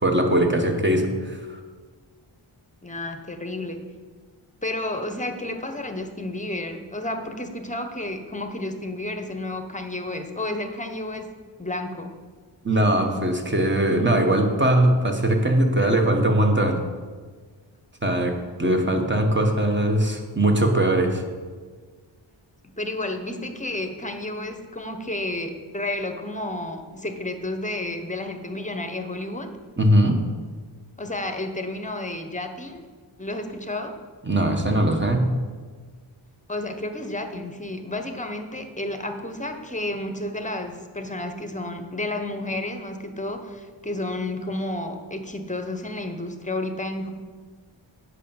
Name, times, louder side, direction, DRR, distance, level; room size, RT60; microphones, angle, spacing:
voice 1, 0.0-1.6 12.6-16.8 18.0-21.2 29.8-30.2 34.2-35.3, right 1 dB, 25° right, 3 dB, 1.3 m, -21 dB
voice 2, 2.8-3.8 4.6-11.3 11.6-12.1 22.8-29.5 31.0-32.9 33.2-33.9 36.5-47.1, left 1 dB, 15° left, 6 dB, 1.0 m, -31 dB
8.3 x 5.8 x 7.0 m, 1.5 s
wide cardioid pair, 80°, 48 cm